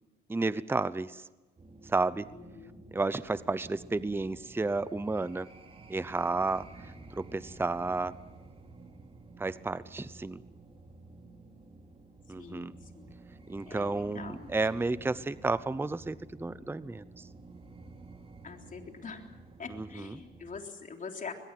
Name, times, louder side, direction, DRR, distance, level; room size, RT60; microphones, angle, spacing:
voice 1, 0.3-1.2 1.8-2.3 2.9-5.5 5.9-8.2 9.4-10.4 12.3-12.7 13.5-17.3 19.7-20.2, right 3 dB, 10° right, 16 dB, 0.7 m, -32 dB
sound 1, 1.6-20.6, right 3 dB, 30° right, 3.1 m, -52 dB
voice 2, 2.3-2.8 12.4-13.2 13.7-14.9 18.4-19.2 19.6-21.3, left 5 dB, 40° left, 3 dB, 3.6 m, -44 dB
22.5 x 21.0 x 7.8 m, 1.2 s
cardioid pair, 90°, 20 cm